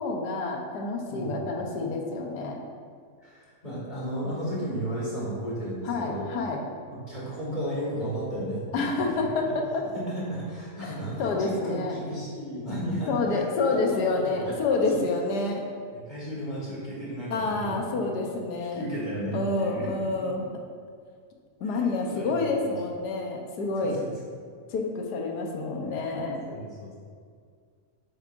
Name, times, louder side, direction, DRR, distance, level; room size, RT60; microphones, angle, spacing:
voice 1, 0.0-2.6 5.8-6.6 8.7-9.9 10.8-12.0 13.1-15.6 17.3-18.8 19.3-20.4 21.6-24.0 24.7-26.4, left 3 dB, 90° left, 1 dB, 1.5 m, -28 dB
voice 2, 1.1-1.4 3.2-6.3 6.9-9.1 9.9-14.5 14.9-15.0 15.9-18.2 18.7-20.3 21.7-21.9 22.1-22.5 23.8-24.1 25.9-26.0 26.5-26.9, equal, 30° left, -7 dB, 2.2 m, -34 dB
8.6 x 7.1 x 2.6 m, 2.1 s
omnidirectional pair, 1.7 m